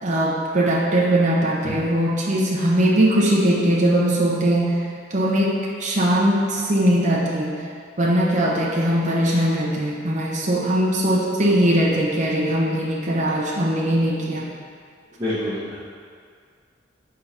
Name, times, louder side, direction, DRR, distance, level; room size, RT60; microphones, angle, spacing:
voice 1, 0.0-4.8 5.1-7.6 8.0-14.5, right 1 dB, 40° right, -4 dB, 0.8 m, -20 dB
voice 2, 15.2-15.7, left 1 dB, 20° right, -13 dB, 1.3 m, -26 dB
4.6 x 3.7 x 5.6 m, 2.1 s
head